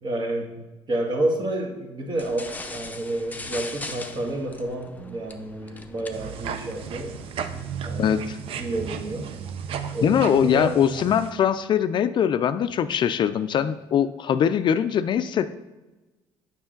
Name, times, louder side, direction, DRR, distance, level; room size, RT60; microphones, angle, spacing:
voice 1, 0.0-7.2 7.8-8.2 8.6-9.3 9.9-10.8, right 1 dB, 45° right, 1 dB, 1.6 m, -30 dB
sound 1, 2.1-7.4, left 3 dB, 15° left, 0.7 m, -40 dB
sound 2, 6.1-11.3, right 7 dB, 60° right, 0.6 m, -34 dB
voice 2, 8.0-8.4 10.0-15.5, left 8 dB, 50° left, 12 dB, 0.4 m, -22 dB
7.0 x 5.7 x 3.8 m, 1.1 s
supercardioid pair, 80°, 11 cm